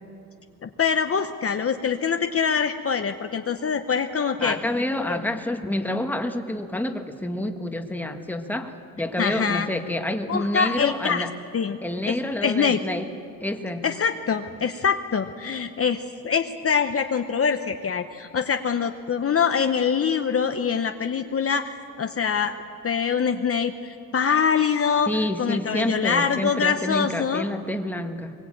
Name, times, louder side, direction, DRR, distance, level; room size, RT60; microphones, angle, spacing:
voice 1, 0.6-4.6 5.0-5.2 9.2-9.7 10.3-11.3 11.5-11.8 12.1-12.8 13.8-22.6 22.8-27.5, left 6 dB, 40° left, 7 dB, 0.9 m, -24 dB
voice 2, 4.4-11.3 11.8-13.1 13.4-13.9 25.1-28.3, left 1 dB, 5° left, 5 dB, 1.5 m, -28 dB
21.5 x 21.5 x 8.7 m, 2.5 s
cardioid pair, 115°, 36 cm